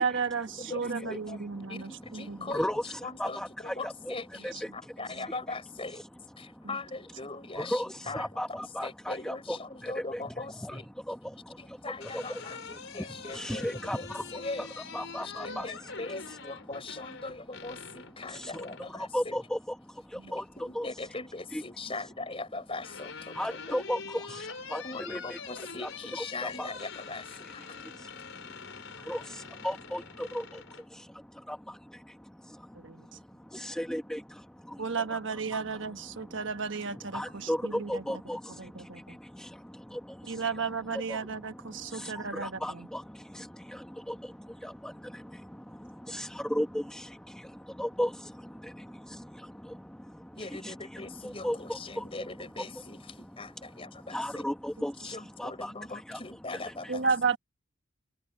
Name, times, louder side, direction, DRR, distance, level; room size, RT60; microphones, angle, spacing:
voice 1, 0.0-2.5 6.6-6.8 15.4-15.6 32.7-33.1 34.8-38.0 38.6-39.2 40.3-42.9 56.9-57.4, right 5 dB, 65° right, 1.3 m, -33 dB
voice 2, 0.6-1.4 1.7-6.0 6.4-10.9 11.6-14.7 15.2-19.5 20.3-23.8 24.8-27.8 50.3-54.5 55.0-57.0, left 3 dB, 25° left, 4.1 m, -41 dB
voice 3, 2.5-4.1 4.4-4.9 6.4-6.7 7.6-10.2 10.6-10.8 11.1-11.8 12.1-12.4 13.3-14.7 14.9-15.7 18.3-20.9 21.5-21.6 23.3-25.4 25.8-25.9 26.4-26.7 27.8-35.2 35.5-36.4 36.8-40.6 40.9-52.1 52.7-52.8 53.4-53.5 53.9-56.2 56.5-56.9, equal, 5° left, 1.1 m, -37 dB
sound 1, 11.7-18.9 20.4-21.1 22.3-30.9, left 5 dB, 70° left, 4.8 m, -44 dB
head